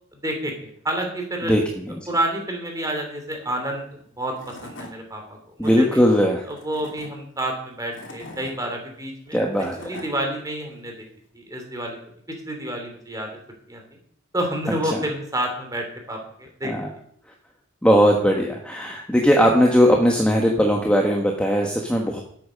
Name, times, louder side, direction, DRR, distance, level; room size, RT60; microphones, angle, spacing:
voice 1, 0.2-1.5 2.1-3.9 4.2-6.0 6.5-9.4 9.8-10.9 11.3-12.0 12.5-13.3 13.7-13.8 14.3-16.7, right 1 dB, 15° right, 3 dB, 2.9 m, -29 dB
voice 2, 1.4-2.1 5.6-6.5 9.3-10.0 14.9-15.0 16.6-16.9 17.8-22.2, equal, 5° left, 0 dB, 1.3 m, -19 dB
Tools / Wood, 4.0-4.1 4.4-4.9 5.4-5.8 6.5-7.1 7.7-8.5 9.3-10.1, left 2 dB, 55° left, 2.8 m, -41 dB
12.5 x 8.6 x 6.4 m, 0.65 s
head